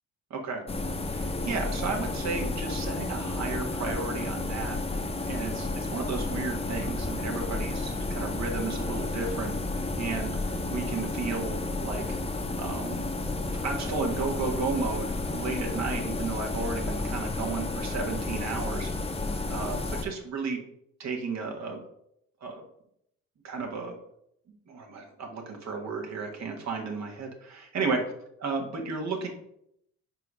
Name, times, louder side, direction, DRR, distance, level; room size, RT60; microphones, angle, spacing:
voice 1, 0.3-0.6 1.1-9.6 10.0-10.4 10.6-11.5 11.8-12.2 12.6-13.0 13.6-19.2 19.5-20.6 21.0-21.8 22.4-22.6 23.4-24.0 24.5-28.0 28.4-29.3, right 4 dB, 60° right, 1 dB, 1.6 m, -33 dB
sound 1, 0.7-20.0, left 2 dB, 20° left, 0.8 m, -32 dB
4.9 x 4.4 x 5.5 m, 0.75 s
cardioid pair, 90°, 30 cm